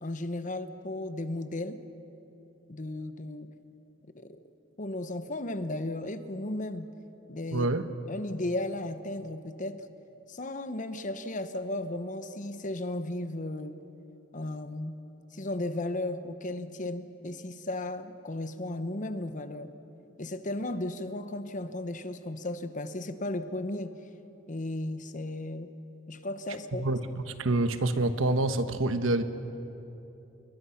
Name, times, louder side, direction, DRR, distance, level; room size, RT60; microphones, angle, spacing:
voice 1, 0.0-1.8 2.7-3.5 4.1-4.4 4.8-6.9 7.3-7.7 8.1-9.8 10.3-13.8 14.3-14.9 15.3-19.7 20.2-24.0 24.5-25.7 26.1-26.9, left 1 dB, 40° left, 10 dB, 1.0 m, -35 dB
voice 2, 7.5-7.9 26.8-29.2, right 2 dB, 75° right, 9 dB, 1.2 m, -27 dB
28.5 x 21.5 x 5.8 m, 3.0 s
head